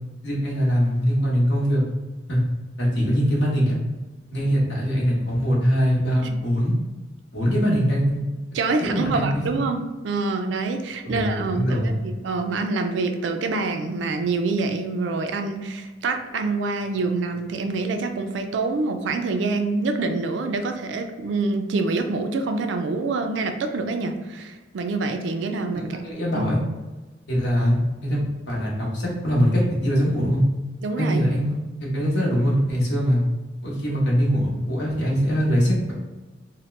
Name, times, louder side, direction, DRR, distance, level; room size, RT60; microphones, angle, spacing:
voice 1, 0.2-1.8 2.3-2.4 2.8-3.8 4.3-6.7 7.3-8.2 8.8-9.4 11.0-12.1 25.7-26.6 27.3-30.4 31.0-31.5 31.8-33.2 33.6-35.9, equal, 60° left, -5 dB, 1.0 m, -22 dB
voice 2, 8.5-26.0 26.3-26.5 30.8-31.2, right 3 dB, 70° right, 6 dB, 0.3 m, -26 dB
2.9 x 2.1 x 3.1 m, 1.2 s
head